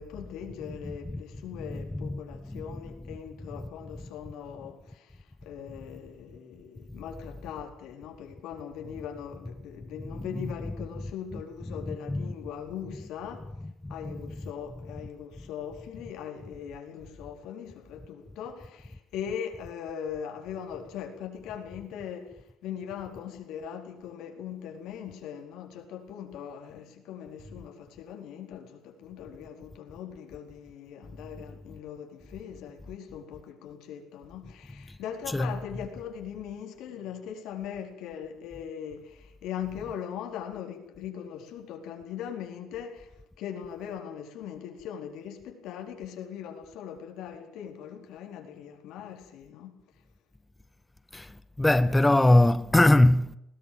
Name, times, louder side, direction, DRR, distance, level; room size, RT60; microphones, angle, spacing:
voice 1, 0.0-13.5 13.9-49.8, left 8 dB, 90° left, 4.4 m, -40 dB
voice 2, 0.7-1.2 1.6-2.2 2.5-3.2 3.6-3.7 10.1-10.7 11.3-12.3 12.9-13.1 14.0-14.5 35.3-35.8 39.8-39.9 51.1-53.4, left 1 dB, 10° left, 0.7 m, -25 dB
20.5 x 18.0 x 7.8 m
cardioid pair, 125°, 0 cm